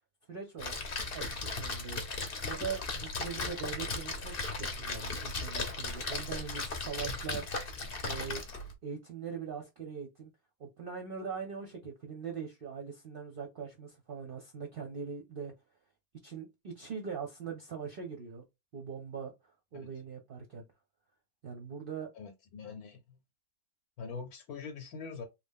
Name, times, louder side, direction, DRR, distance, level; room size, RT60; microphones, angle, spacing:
voice 1, 0.3-0.8 1.1-2.0 2.4-4.3 4.6-7.5 8.0-8.4 8.8-10.3 10.6-15.5 16.2-18.4 18.7-19.3 19.7-20.6 21.4-22.1, right 6 dB, 50° right, 0.7 m, -41 dB
Splash splatter, 0.6-8.7, left 3 dB, 45° left, 0.9 m, -37 dB
voice 2, 22.1-23.0 24.0-25.3, left 5 dB, 80° left, 1.2 m, -43 dB
3.2 x 2.3 x 3.5 m
omnidirectional pair, 1.5 m